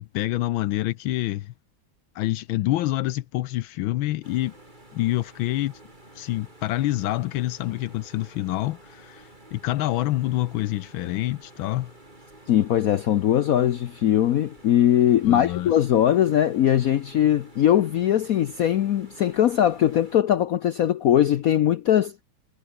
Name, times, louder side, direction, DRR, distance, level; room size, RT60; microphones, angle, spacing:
voice 1, 0.0-1.5 2.1-4.5 4.9-5.7 6.1-11.9 15.2-15.7, left 16 dB, 80° left, 1.4 m, -27 dB
sound 1, 4.2-20.2, right 1 dB, 20° right, 5.2 m, -50 dB
voice 2, 12.5-22.1, left 11 dB, 65° left, 0.9 m, -20 dB
omnidirectional pair, 2.2 m